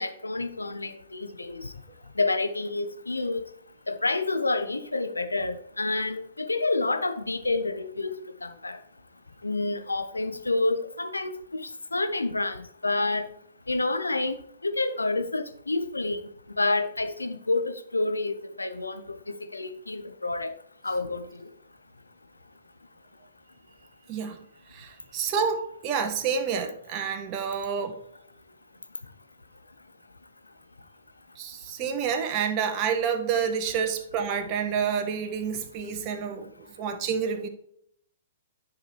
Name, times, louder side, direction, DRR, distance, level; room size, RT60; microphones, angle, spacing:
voice 1, 0.0-1.7 2.2-3.4 3.9-8.1 8.4-8.8 9.4-11.3 11.6-13.3 13.7-20.5 20.8-21.3, left 2 dB, 90° left, 8 dB, 0.8 m, -29 dB
voice 2, 24.1-24.4 24.7-28.0 31.4-36.5 36.8-37.5, right 6 dB, 35° right, 5 dB, 1.1 m, -28 dB
10.0 x 4.8 x 3.3 m, 0.69 s
figure-of-eight pair, 115°, 0 cm